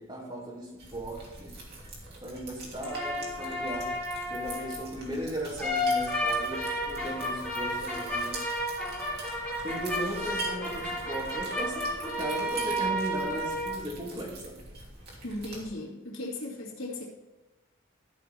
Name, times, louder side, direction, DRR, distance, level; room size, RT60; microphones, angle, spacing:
voice 1, 0.0-1.6 2.2-4.0 4.3-8.4 9.6-14.6, right 1 dB, 25° right, -3 dB, 2.4 m, -37 dB
sound 1, 0.8-15.7, right 2 dB, 50° right, 2.7 m, -44 dB
sound 2, 2.8-4.8 5.6-13.7, equal, 10° left, 3.5 m, -32 dB
voice 2, 15.2-17.0, left 1 dB, 75° left, -4 dB, 2.4 m, -37 dB
13.5 x 5.9 x 4.1 m, 1.1 s
head